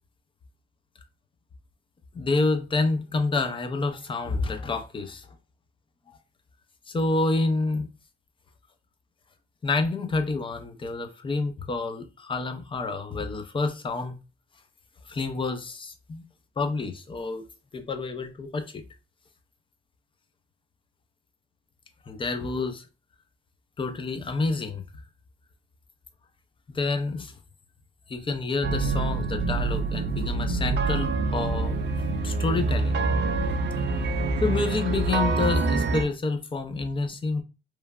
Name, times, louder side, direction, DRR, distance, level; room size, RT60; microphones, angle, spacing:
voice 1, 2.1-5.3 6.9-7.9 9.6-14.2 15.1-16.2 16.6-17.4 17.7-18.8 22.1-22.9 23.8-24.8 26.7-27.3 28.1-31.8 32.2-33.0 34.4-37.4, left 3 dB, 25° left, 0.5 m, -28 dB
sound 1, 28.6-36.0, right 3 dB, 60° right, 0.5 m, -26 dB
3.0 x 2.2 x 2.3 m
cardioid pair, 90°, 20 cm